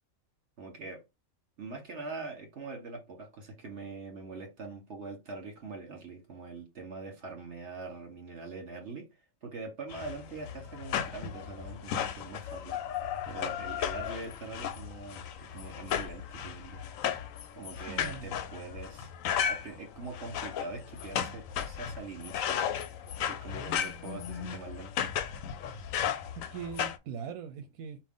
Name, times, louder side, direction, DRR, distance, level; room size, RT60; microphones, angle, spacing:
voice 1, 0.6-1.0 1.6-12.8 13.3-16.8 17.5-19.1 19.4-22.6 23.3-25.0, right 3 dB, 55° right, 1.6 m, -43 dB
sound 1, 9.9-27.0, left 9 dB, 75° left, 1.0 m, -35 dB
voice 2, 17.7-18.3 26.3-28.0, right 7 dB, 80° right, 1.0 m, -41 dB
5.5 x 2.5 x 3.7 m
omnidirectional pair, 1.5 m